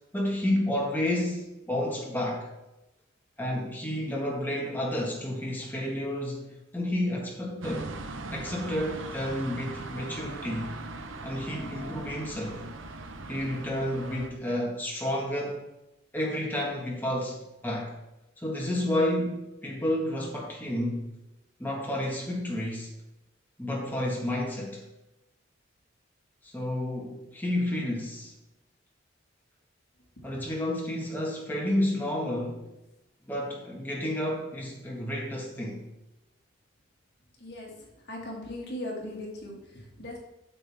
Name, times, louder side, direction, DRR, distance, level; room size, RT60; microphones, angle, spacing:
voice 1, 0.1-2.5 3.4-7.9 8.3-10.7 11.2-12.6 13.3-15.6 16.1-17.9 18.4-21.1 21.6-22.9 23.6-24.8 26.4-28.3 30.2-32.7 33.3-35.9, left 1 dB, 10° left, -3 dB, 1.6 m, -30 dB
sound 1, 7.6-14.3, right 2 dB, 80° right, 0.8 m, -40 dB
voice 2, 37.4-37.7 38.0-40.2, left 1 dB, 55° left, -3 dB, 2.2 m, -38 dB
9.0 x 7.0 x 3.5 m, 0.94 s
head